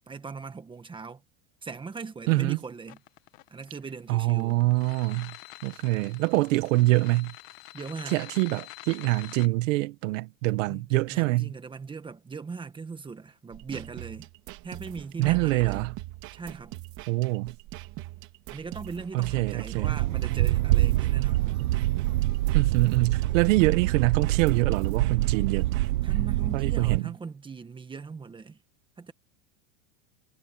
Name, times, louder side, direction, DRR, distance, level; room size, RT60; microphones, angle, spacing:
voice 1, 0.1-1.2 1.6-3.0 3.5-4.6 7.7-8.2 10.7-14.3 14.6-15.9 16.3-16.8 18.5-21.5 26.0-28.6 29.0-29.1, right 4 dB, 10° right, 1.6 m, -40 dB
voice 2, 2.3-2.6 4.1-5.4 5.6-7.3 8.1-11.5 15.2-15.9 17.1-17.5 19.1-19.9 22.5-25.7 26.5-27.1, right 20 dB, 65° right, 1.6 m, -25 dB
sound 1, 2.9-9.5, left 22 dB, 50° left, 1.5 m, -46 dB
sound 2, 13.5-25.9, right 18 dB, 45° right, 3.4 m, -42 dB
sound 3, 19.8-27.0, right 16 dB, 85° right, 1.1 m, -25 dB
supercardioid pair, 155°, 42 cm